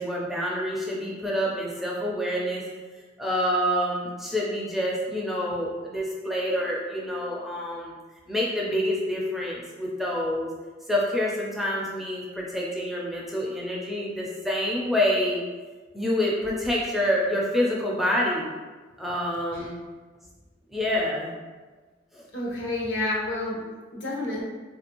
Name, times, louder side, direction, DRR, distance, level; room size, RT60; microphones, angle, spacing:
voice 1, 0.0-2.6 3.2-7.9 8.3-10.5 10.9-15.4 15.9-18.5 19.0-19.8 20.7-21.3 22.1-22.2, equal, ahead, -4 dB, 0.4 m, -27 dB
voice 2, 22.3-24.4, left 2 dB, 80° left, -4 dB, 0.9 m, -30 dB
3.5 x 2.5 x 2.9 m, 1.4 s
head